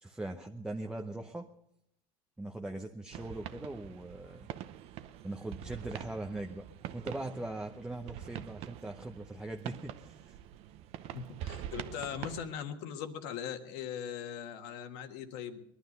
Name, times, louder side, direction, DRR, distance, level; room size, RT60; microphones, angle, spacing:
voice 1, 0.0-1.5 2.4-4.5 5.2-6.6 6.9-10.4, right 2 dB, 5° right, 2 dB, 0.8 m, -40 dB
sound 1, 3.1-12.5, right 11 dB, 55° right, 0.8 m, -45 dB
voice 2, 11.1-15.6, left 8 dB, 70° left, 6 dB, 1.6 m, -40 dB
20.5 x 11.5 x 5.4 m, 0.77 s
supercardioid pair, 120°, 12 cm